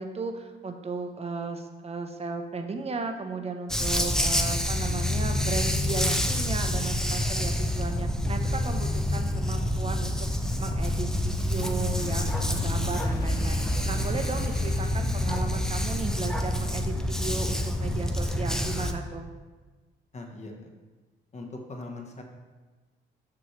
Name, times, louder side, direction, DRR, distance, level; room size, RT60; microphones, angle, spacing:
voice 1, 0.0-19.3, right 3 dB, 30° right, 5 dB, 0.8 m, -35 dB
Dog, 3.7-18.9, left 1 dB, 5° left, 0.5 m, -27 dB
sound 1, 11.9-16.0, left 2 dB, 50° left, 0.8 m, -43 dB
voice 2, 14.9-15.3 20.1-20.7 21.3-22.2, left 2 dB, 35° left, 2 dB, 1.1 m, -41 dB
6.2 x 5.9 x 3.2 m, 1.3 s
cardioid pair, 90°, 20 cm